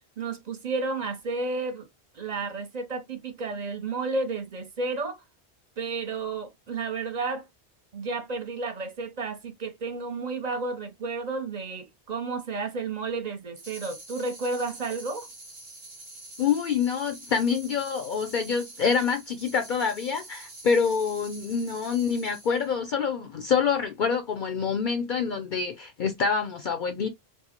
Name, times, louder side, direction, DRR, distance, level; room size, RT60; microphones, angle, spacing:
voice 1, 0.2-1.9 2.1-5.2 5.8-7.5 7.9-15.3, right 3 dB, 45° right, 0.7 m, -32 dB
sound 1, 13.6-22.7, right 2 dB, 65° right, 1.4 m, -46 dB
voice 2, 16.4-27.1, left 6 dB, 60° left, 0.6 m, -26 dB
4.5 x 2.0 x 2.8 m
omnidirectional pair, 1.1 m